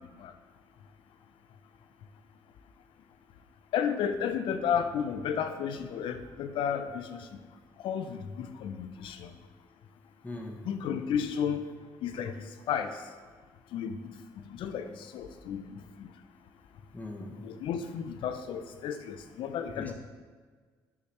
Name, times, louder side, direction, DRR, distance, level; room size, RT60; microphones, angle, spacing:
voice 1, 3.7-7.3 7.8-9.3 10.7-11.6 12.0-13.0 13.7-14.0 14.5-16.1 17.4-19.9, left 8 dB, 70° left, 9 dB, 0.5 m, -33 dB
voice 2, 10.2-10.6 16.9-17.4 19.8-19.9, left 2 dB, 15° left, 1 dB, 1.1 m, -40 dB
7.0 x 4.8 x 3.2 m, 1.5 s
supercardioid pair, 70°, 9 cm